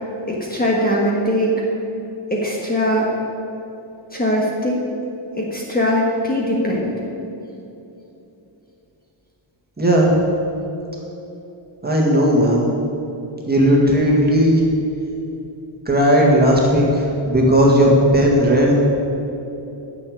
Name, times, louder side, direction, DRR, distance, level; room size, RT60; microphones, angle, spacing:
voice 1, 0.3-1.6 2.3-3.1 4.1-4.8 5.4-6.9, equal, 20° left, -4 dB, 1.5 m, -20 dB
voice 2, 9.8-10.1 11.8-12.7 13.5-14.6 15.9-18.7, equal, 20° right, -3 dB, 1.9 m, -15 dB
9.8 x 7.0 x 8.6 m, 3.0 s
wide cardioid pair, 175°, 49 cm